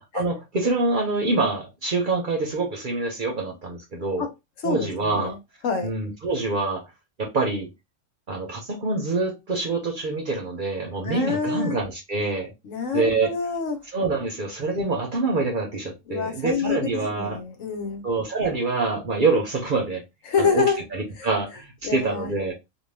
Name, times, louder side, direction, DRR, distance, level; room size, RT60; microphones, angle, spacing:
voice 1, 0.0-4.3 4.6-5.3 5.8-6.8 7.2-7.7 8.3-12.5 12.9-13.3 13.9-17.4 18.0-20.0 20.4-20.6 20.9-22.5, right 3 dB, 50° right, 0.7 m, -26 dB
voice 2, 4.6-5.4 5.6-5.9 11.0-11.8 12.6-13.8 16.1-18.0 20.3-20.8 21.2-21.3 21.8-22.3, left 5 dB, 80° left, 1.1 m, -26 dB
2.5 x 2.3 x 3.2 m
omnidirectional pair, 1.3 m